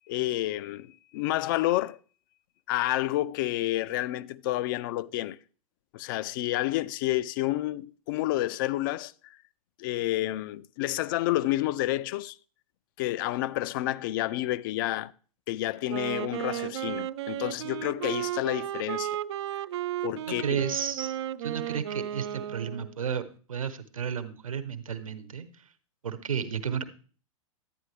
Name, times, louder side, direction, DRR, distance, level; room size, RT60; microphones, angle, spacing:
voice 1, 0.1-2.0 2.7-5.4 5.9-9.4 9.8-12.4 13.0-15.1 15.5-19.2 20.0-20.6, left 16 dB, 35° left, 0.4 m, -29 dB
Wind instrument woodwind instrument, 15.8-23.0, right 12 dB, 50° right, 0.4 m, -34 dB
voice 2, 20.2-23.2 23.5-25.5 26.0-26.8, right 7 dB, 70° right, 1.1 m, -32 dB
11.5 x 9.4 x 3.3 m
figure-of-eight pair, 105°, 18 cm